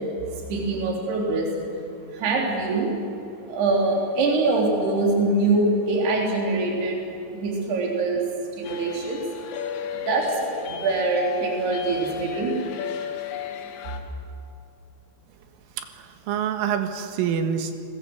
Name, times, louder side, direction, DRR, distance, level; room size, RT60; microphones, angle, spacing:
voice 1, 0.5-1.5 2.1-2.9 3.5-7.0 7.3-8.2 8.6-9.3 9.9-12.6, right 3 dB, 55° right, -1 dB, 5.6 m, -24 dB
sound 1, 8.6-14.0, left 8 dB, 70° left, 3.7 m, -33 dB
voice 2, 15.8-17.8, right 8 dB, 80° right, 6 dB, 4.0 m, -27 dB
29.5 x 20.5 x 8.1 m, 2.6 s
omnidirectional pair, 5.9 m